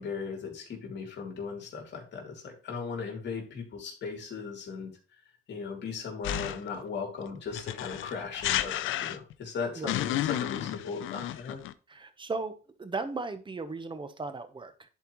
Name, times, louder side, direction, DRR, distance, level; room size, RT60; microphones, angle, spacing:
voice 1, 0.0-4.9 5.5-11.6, left 5 dB, 60° left, 1 dB, 2.9 m, -37 dB
sound 1, 6.2-6.8 7.5-9.4 9.9-11.7, left 13 dB, 80° left, 0.5 m, -31 dB
voice 2, 11.9-12.5 12.8-14.9, right 3 dB, 25° right, 11 dB, 1.0 m, -36 dB
10.5 x 4.5 x 3.0 m, 0.36 s
cardioid pair, 90°, 20 cm